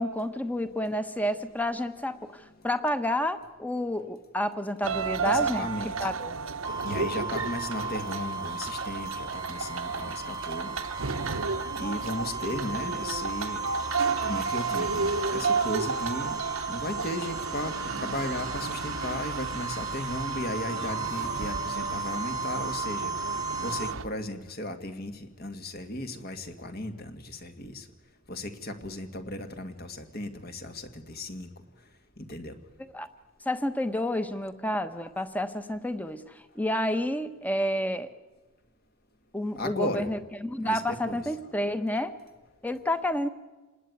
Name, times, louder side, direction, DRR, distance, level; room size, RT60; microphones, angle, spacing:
voice 1, 0.0-5.7 6.0-6.3 32.9-33.1 33.4-38.1 39.3-42.1 42.6-43.3, left 1 dB, 5° left, 10 dB, 1.2 m, -30 dB
sound 1, 4.8-24.0, right 4 dB, 75° right, 1.1 m, -33 dB
voice 2, 5.2-6.1 6.8-10.7 11.8-13.6 14.2-16.4 16.7-23.3 23.6-27.9 28.3-31.5 32.2-32.5 39.6-40.1 40.6-41.2, left 1 dB, 45° left, 7 dB, 2.1 m, -35 dB
sound 2, 6.6-23.9, right 3 dB, 20° right, 0.9 m, -35 dB
28.0 x 19.5 x 9.5 m, 1.2 s
head